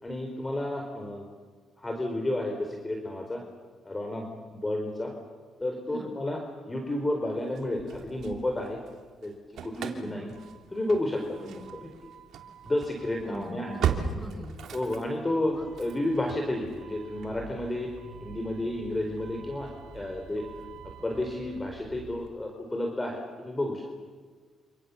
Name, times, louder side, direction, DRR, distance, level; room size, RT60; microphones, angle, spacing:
voice 1, 0.0-1.3 1.8-3.4 3.8-5.1 5.6-6.4 6.7-8.8 9.2-9.3 9.6-10.3 10.7-11.9 12.6-13.8 14.7-15.5 15.8-17.9 18.2-20.4 21.0-23.8, left 1 dB, 20° left, 2 dB, 4.6 m, -31 dB
Engine starting / Slam, 7.6-8.9 9.2-22.3, right 7 dB, 70° right, 3.4 m, -39 dB
voice 2, 9.7-10.4 11.4-11.6 13.2-14.6 15.5-15.7, right 1 dB, ahead, 1 dB, 7.9 m, -42 dB
28.0 x 28.0 x 7.2 m, 1.5 s
cardioid pair, 90°, 0 cm